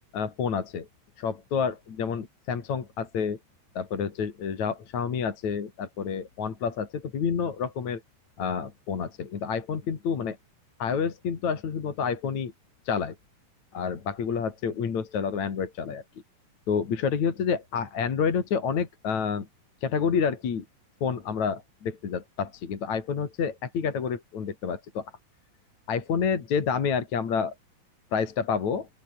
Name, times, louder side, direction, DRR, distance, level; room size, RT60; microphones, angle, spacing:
voice 1, 0.1-0.9 1.2-3.4 3.8-8.0 8.4-10.4 10.8-12.5 12.9-13.2 13.7-16.0 16.7-19.5 19.8-20.7 21.0-25.1 25.9-27.5 28.1-28.9, left 6 dB, 45° left, 3.9 m, -29 dB
open air
omnidirectional pair, 4.8 m